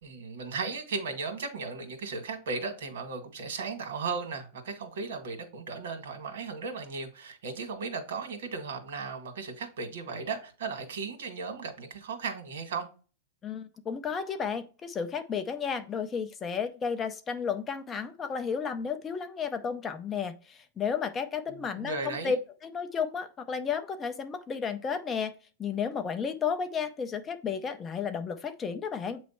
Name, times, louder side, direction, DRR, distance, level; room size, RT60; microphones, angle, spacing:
voice 1, 0.0-12.9 21.5-22.4, right 4 dB, 80° right, 1.8 m, -36 dB
voice 2, 13.4-25.3 25.6-29.2, left 6 dB, 15° left, 0.5 m, -33 dB
8.5 x 3.1 x 4.3 m
supercardioid pair, 170°, 0 cm